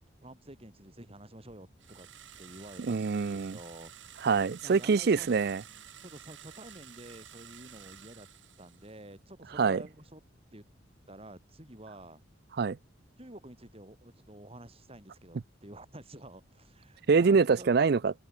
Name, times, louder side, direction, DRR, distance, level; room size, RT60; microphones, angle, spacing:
voice 1, 0.2-2.1 2.4-4.3 4.6-5.3 5.7-8.3 8.6-10.2 10.5-10.7 11.1-12.2 13.2-17.7, right 1 dB, 30° right, 4.3 m, -49 dB
sound 1, 1.8-9.1, right 10 dB, 85° right, 5.6 m, -52 dB
voice 2, 2.8-3.6 4.2-5.6 9.6-9.8 12.6-12.8 17.1-18.1, right 5 dB, 55° right, 0.4 m, -25 dB
open air
head